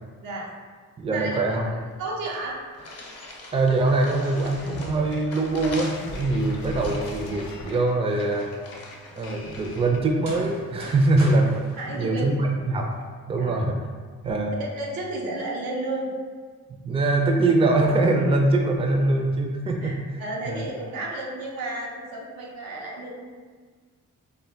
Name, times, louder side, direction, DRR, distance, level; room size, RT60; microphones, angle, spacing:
voice 1, 0.2-0.5 1.1-1.7 2.0-2.6 11.8-12.3 13.4-13.6 14.6-16.1 19.8-23.3, right 2 dB, 90° right, -2 dB, 0.6 m, -32 dB
voice 2, 1.0-1.7 3.5-8.5 9.1-12.9 13.3-13.8 14.2-14.6 16.7-20.7, right 2 dB, 20° right, 1 dB, 0.4 m, -23 dB
sound 1, 1.9-2.0 2.3-9.8, left 2 dB, 45° left, 0.7 m, -43 dB
sound 2, 4.3-10.6, left 2 dB, 85° left, 0.5 m, -40 dB
sound 3, 10.2-13.0, right 1 dB, 75° right, 1.0 m, -42 dB
2.2 x 2.1 x 3.8 m, 1.5 s
cardioid pair, 60°, 34 cm